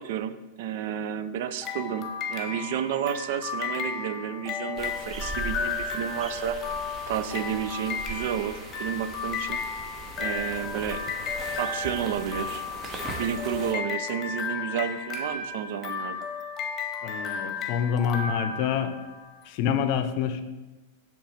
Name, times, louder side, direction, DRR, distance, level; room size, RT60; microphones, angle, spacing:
voice 1, 0.0-6.6 7.1-9.6 10.2-11.0 11.6-12.6 13.2-16.3, right 9 dB, 60° right, 12 dB, 0.4 m, -31 dB
sound 1, 1.6-19.3, left 5 dB, 30° left, 0.9 m, -34 dB
sound 2, 4.8-13.7, right 3 dB, 25° right, 1.0 m, -40 dB
voice 2, 17.0-19.0 19.4-20.4, left 8 dB, 50° left, 9 dB, 0.6 m, -27 dB
7.0 x 3.0 x 5.6 m, 1.1 s
hypercardioid pair, 105°, 0 cm